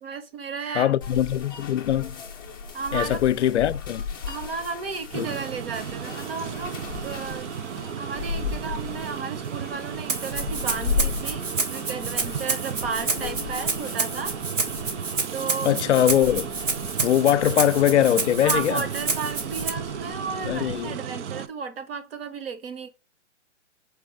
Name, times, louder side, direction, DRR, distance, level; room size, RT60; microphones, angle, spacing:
voice 1, 0.0-0.9 2.7-3.2 4.3-7.5 8.0-14.4 14.9-15.8 17.3-17.4 18.4-22.9, right 5 dB, 50° right, 1.1 m, -34 dB
voice 2, 0.7-2.2 2.9-4.0 5.1-5.3 15.6-16.5 17.0-18.8 20.5-21.0, left 11 dB, 70° left, 0.5 m, -22 dB
sound 1, 1.0-20.9, left 5 dB, 20° left, 0.5 m, -36 dB
sound 2, 5.1-21.5, right 8 dB, 70° right, 0.5 m, -34 dB
Rattle (instrument), 10.1-19.7, right 4 dB, 90° right, 1.3 m, -29 dB
4.6 x 2.4 x 4.7 m
hypercardioid pair, 160°, 36 cm